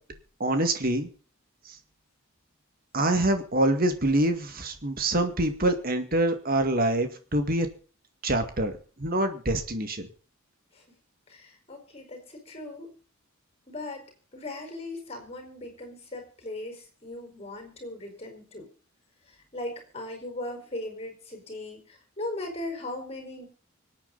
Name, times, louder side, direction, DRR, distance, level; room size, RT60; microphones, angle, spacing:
voice 1, 0.4-1.1 1.7-1.8 2.9-7.7 8.2-8.7 9.0-10.1, right 1 dB, 45° right, 7 dB, 2.1 m, -25 dB
voice 2, 11.3-12.9 13.7-14.0 14.3-18.7 19.2-23.5, left 2 dB, 30° left, 4 dB, 5.2 m, -38 dB
25.0 x 8.9 x 4.1 m, 0.39 s
head